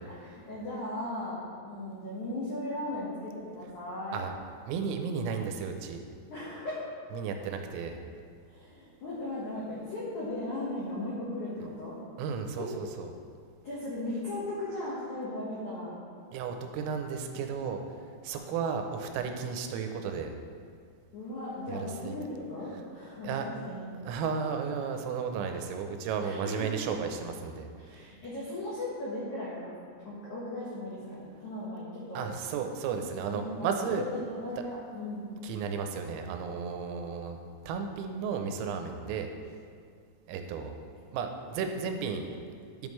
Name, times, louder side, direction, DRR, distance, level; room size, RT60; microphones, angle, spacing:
voice 1, 0.1-4.2 6.3-6.8 8.4-12.0 12.6-12.7 13.6-16.0 18.3-18.4 21.1-23.8 26.2-26.7 27.8-29.7 30.0-32.2 33.3-35.3, left 1 dB, 85° left, -8 dB, 1.7 m, -37 dB
voice 2, 4.7-6.0 7.1-8.0 12.2-13.1 16.3-17.8 18.2-20.3 21.7-21.8 22.1-22.2 23.2-23.5 24.0-28.1 32.1-34.0 35.4-37.4 37.6-39.3 40.3-40.8 41.1-42.3, right 6 dB, 90° right, 5 dB, 3.3 m, -33 dB
10.5 x 7.2 x 3.2 m, 2.3 s
omnidirectional pair, 5.9 m